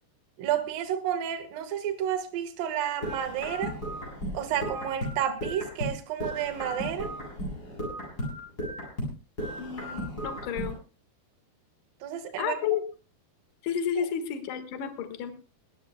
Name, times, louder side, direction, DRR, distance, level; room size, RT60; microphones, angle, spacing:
voice 1, 0.4-3.8 4.3-7.1 12.0-12.7 14.0-14.1, right 10 dB, 65° right, 2.9 m, -31 dB
sound 1, 3.0-5.9 6.2-9.1 9.4-10.7, equal, 20° left, 8.5 m, -35 dB
voice 2, 9.6-10.8 12.4-12.8 13.6-15.3, left 8 dB, 60° left, 2.8 m, -31 dB
22.0 x 16.5 x 2.2 m
omnidirectional pair, 4.9 m